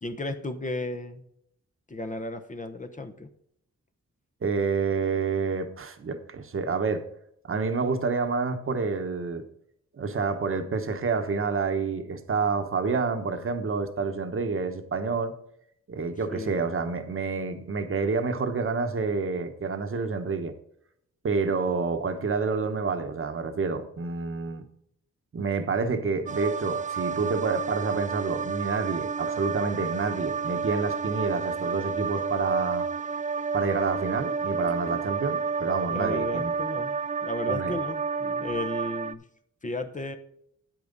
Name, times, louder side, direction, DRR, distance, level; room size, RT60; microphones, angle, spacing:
voice 1, 0.0-1.2 1.9-3.3 16.3-16.6 35.9-39.2 39.6-40.2, left 2 dB, 25° left, 0.9 m, -34 dB
voice 2, 4.4-7.0 7.4-9.4 9.9-15.3 15.9-20.5 21.2-24.6 25.3-32.9 33.5-36.5 37.5-37.7, right 4 dB, 45° right, 1.2 m, -28 dB
sound 1, 26.3-39.1, right 5 dB, 25° right, 0.4 m, -30 dB
9.5 x 9.0 x 4.0 m
cardioid pair, 95°, 29 cm